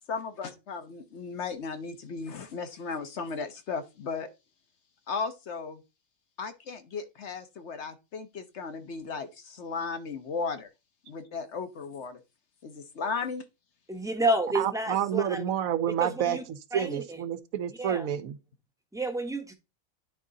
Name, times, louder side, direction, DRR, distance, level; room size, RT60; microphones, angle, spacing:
voice 1, 0.1-4.3 5.1-5.8 6.4-10.7 11.1-12.2 12.6-13.4, left 5 dB, 60° left, 1.1 m, -35 dB
voice 2, 13.9-15.4 16.0-16.4 16.7-17.2 17.8-18.1 18.9-19.5, right 1 dB, 5° right, 0.7 m, -30 dB
voice 3, 14.5-16.4 16.7-18.4, right 9 dB, 80° right, 1.1 m, -29 dB
9.7 x 3.7 x 3.9 m
omnidirectional pair, 1.4 m